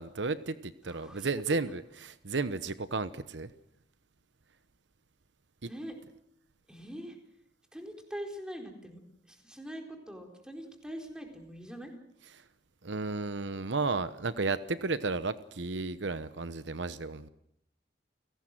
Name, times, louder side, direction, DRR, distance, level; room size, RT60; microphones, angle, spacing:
voice 1, 0.0-3.5 5.6-5.7 12.8-17.3, right 3 dB, 75° right, 13 dB, 1.0 m, -33 dB
voice 2, 0.9-1.3 5.6-5.9 6.7-7.2 7.7-9.0 9.3-11.9, equal, 5° right, 3 dB, 4.3 m, -43 dB
29.5 x 18.0 x 7.7 m, 0.76 s
head